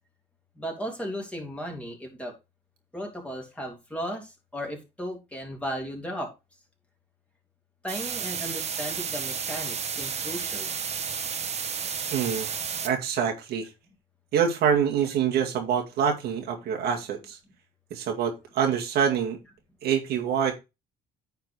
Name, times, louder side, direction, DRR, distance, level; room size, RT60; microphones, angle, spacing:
voice 1, 0.6-2.3 2.9-6.3 7.8-10.7, equal, 5° left, 3.3 m, -35 dB
sound 1, 7.9-12.9, right 6 dB, 40° right, 1.4 m, -32 dB
voice 2, 12.1-12.5 12.8-13.7 14.3-17.4 17.9-19.4 19.8-20.5, right 7 dB, 70° right, 2.2 m, -25 dB
9.6 x 4.6 x 4.8 m
cardioid pair, 110°, 17 cm